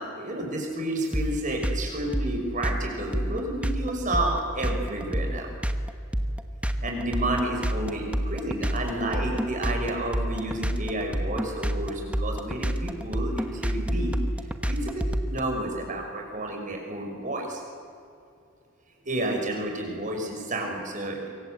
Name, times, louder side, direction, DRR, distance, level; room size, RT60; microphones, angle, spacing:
voice 1, 0.0-5.5 6.8-14.2 14.6-17.6 19.0-21.3, right 1 dB, 40° right, 2 dB, 6.1 m, -30 dB
sound 1, 1.1-15.4, equal, 5° right, 1.2 m, -28 dB
26.5 x 24.5 x 8.2 m, 2.4 s
head